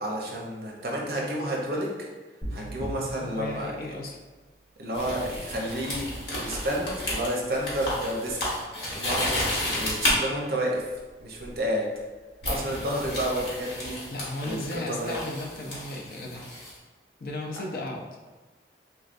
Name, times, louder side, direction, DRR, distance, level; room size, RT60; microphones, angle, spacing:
voice 1, 0.0-1.9 2.5-3.7 4.8-6.1 6.4-8.4 8.9-10.8 11.2-11.9 12.4-14.0 14.4-15.2, right 1 dB, 55° right, -2 dB, 0.7 m, -30 dB
sound 1, 2.4-4.5, right 1 dB, 5° right, 1.2 m, -39 dB
voice 2, 3.2-4.2 12.5-12.8 14.1-16.5 17.2-18.0, left 2 dB, 55° left, 0 dB, 0.5 m, -35 dB
sound 2, 4.9-10.1 11.4-11.6 12.4-16.7, left 1 dB, 80° left, 1.2 m, -32 dB
3.4 x 3.1 x 2.5 m, 1.3 s
head